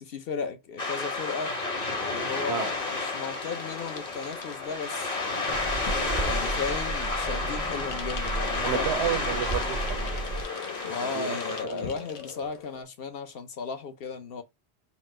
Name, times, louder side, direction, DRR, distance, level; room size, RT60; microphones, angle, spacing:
voice 1, 0.0-1.6 2.0-5.4 5.8-8.9 10.8-14.4, left 5 dB, 65° left, 0.9 m, -35 dB
sound 1, 0.8-11.6, left 3 dB, 40° left, 1.1 m, -31 dB
sound 2, 2.7-12.8, left 7 dB, 85° left, 1.0 m, -44 dB
sound 3, 5.5-10.4, right 3 dB, 30° right, 0.5 m, -34 dB
voice 2, 8.6-10.0 11.0-11.4 11.6-11.9, right 11 dB, 85° right, 0.9 m, -31 dB
4.2 x 2.0 x 4.2 m
omnidirectional pair, 1.1 m